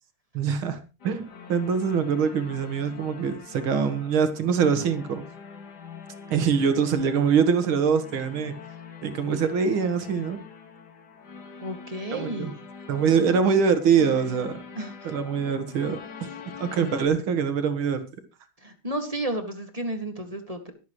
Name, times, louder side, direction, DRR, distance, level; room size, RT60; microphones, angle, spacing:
voice 1, 0.3-5.2 6.3-8.5 9.0-10.4 12.1-12.5 12.9-14.6 15.0-16.0 16.6-18.0, right 6 dB, 80° right, 9 dB, 2.4 m, -24 dB
sound 1, 1.0-17.1, left 6 dB, 55° left, 2.2 m, -44 dB
voice 2, 11.6-12.6 14.8-15.1 18.6-20.7, right 1 dB, 20° right, 5 dB, 1.9 m, -32 dB
24.5 x 8.3 x 3.1 m, 0.30 s
omnidirectional pair, 2.2 m